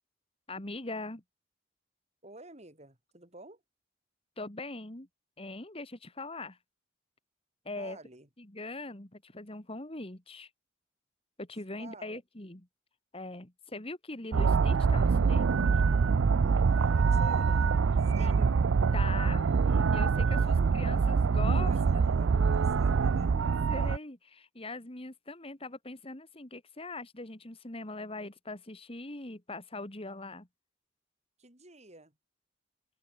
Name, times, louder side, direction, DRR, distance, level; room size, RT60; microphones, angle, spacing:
voice 1, 0.5-1.2 4.4-5.1 5.4-6.6 7.7-8.0 8.5-10.5 11.4-12.6 13.1-16.0 18.2-18.5 18.9-22.1 23.3-30.5, left 2 dB, 30° left, 2.3 m, -41 dB
voice 2, 2.2-3.6 7.8-8.3 11.8-12.2 16.7-17.7 18.1-18.6 20.4-21.1 21.5-23.4 31.4-32.2, right 2 dB, 35° right, 7.0 m, -51 dB
sound 1, 14.3-24.0, right 5 dB, 90° right, 0.5 m, -25 dB
head